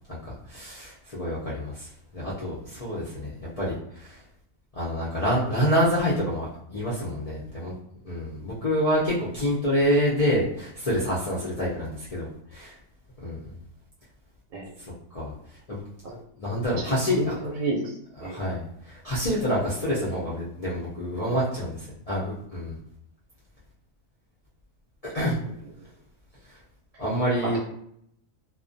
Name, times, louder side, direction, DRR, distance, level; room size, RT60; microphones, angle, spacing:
voice 1, 0.1-1.9 2.1-4.2 4.7-7.7 8.0-12.7 13.2-13.4 15.1-15.3 15.7-15.8 16.4-17.4 18.2-22.8 25.0-25.4 27.0-27.6, equal, 75° left, -8 dB, 0.3 m, -27 dB
voice 2, 17.1-17.9 18.2-18.4 27.4-27.6, right 2 dB, 75° right, -2 dB, 1.0 m, -30 dB
2.3 x 2.2 x 2.5 m, 0.71 s
omnidirectional pair, 1.5 m